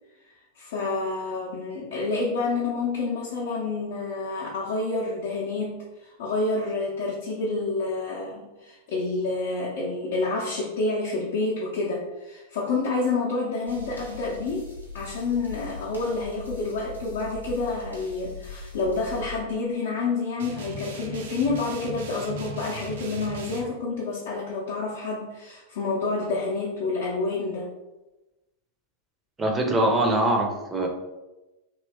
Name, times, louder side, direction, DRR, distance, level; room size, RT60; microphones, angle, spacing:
voice 1, 0.5-27.7, left 3 dB, 55° left, -5 dB, 0.6 m, -28 dB
sound 1, 13.7-19.4, left 5 dB, 90° left, 0.8 m, -41 dB
sound 2, 20.4-23.6, right 2 dB, 60° right, 0.5 m, -37 dB
voice 2, 29.4-30.9, right 1 dB, 15° right, 2 dB, 0.6 m, -23 dB
3.0 x 2.7 x 3.3 m, 1.0 s
figure-of-eight pair, 90°, 0 cm